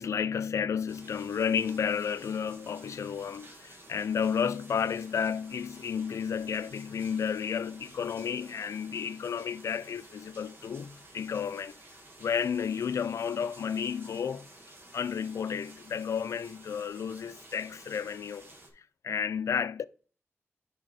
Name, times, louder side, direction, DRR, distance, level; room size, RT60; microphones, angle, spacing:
voice 1, 0.0-11.8 12.2-14.5 14.9-18.5 19.0-19.9, left 7 dB, 90° left, 0.3 m, -32 dB
sound 1, 0.9-18.7, right 1 dB, 45° right, 1.6 m, -53 dB
10.0 x 3.5 x 4.0 m
wide cardioid pair, 145°, 5 cm